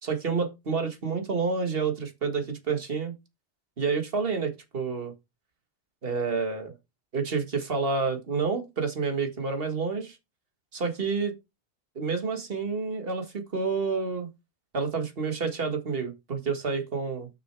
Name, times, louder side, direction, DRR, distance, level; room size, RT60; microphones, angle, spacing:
voice 1, 0.0-3.1 3.8-5.1 6.0-6.7 7.1-10.2 10.7-11.3 12.0-13.3 13.5-14.3 14.7-17.3, right 5 dB, 55° right, 1.9 m, -29 dB
6.4 x 6.2 x 4.6 m
omnidirectional pair, 1.2 m